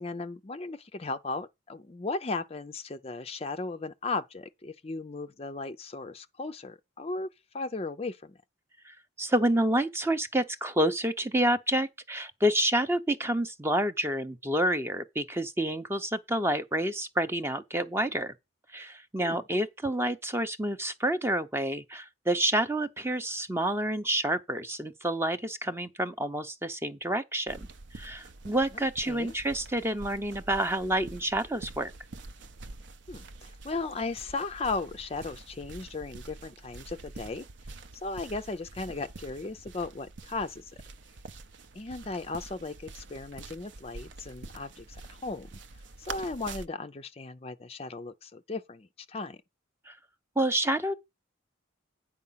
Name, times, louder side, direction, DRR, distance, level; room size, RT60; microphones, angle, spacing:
voice 1, 0.0-7.3 7.5-8.4 19.2-19.4 28.7-29.3 33.1-37.5 38.0-40.7 41.7-45.6 46.0-49.4, left 3 dB, 30° left, 0.5 m, -36 dB
voice 2, 8.8-18.3 18.7-27.7 27.9-31.9 49.9-50.0 50.4-50.9, right 1 dB, 10° right, 0.6 m, -28 dB
sound 1, 27.5-46.7, right 3 dB, 60° right, 0.6 m, -46 dB
9.6 x 4.7 x 5.6 m
head